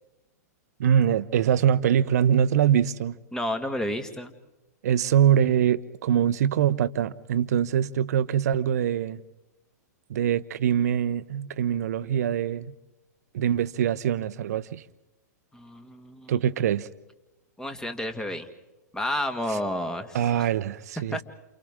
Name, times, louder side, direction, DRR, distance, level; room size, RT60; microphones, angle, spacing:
voice 1, 0.8-3.1 4.8-9.2 10.1-12.7 13.3-14.8 16.3-16.9 20.1-21.2, right 9 dB, 65° right, 0.9 m, -23 dB
voice 2, 3.3-4.3 15.5-16.3 17.6-18.5 18.9-20.5 21.1-21.2, left 1 dB, 5° left, 1.9 m, -31 dB
29.5 x 29.0 x 3.7 m
hypercardioid pair, 115°, 9 cm